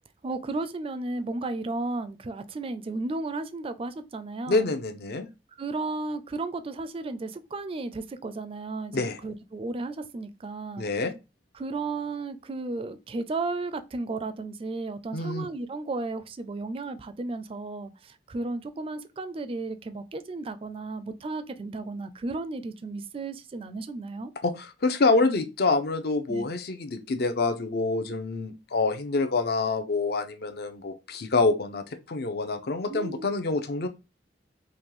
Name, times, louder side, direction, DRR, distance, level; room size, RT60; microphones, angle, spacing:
voice 1, 0.2-4.7 5.6-10.9 11.5-24.3 26.3-26.5 32.9-33.3, right 3 dB, 30° right, 0.4 m, -34 dB
voice 2, 4.5-5.3 8.9-9.2 10.8-11.1 15.1-15.5 24.4-33.9, left 3 dB, 60° left, 0.6 m, -26 dB
5.1 x 2.2 x 3.0 m
head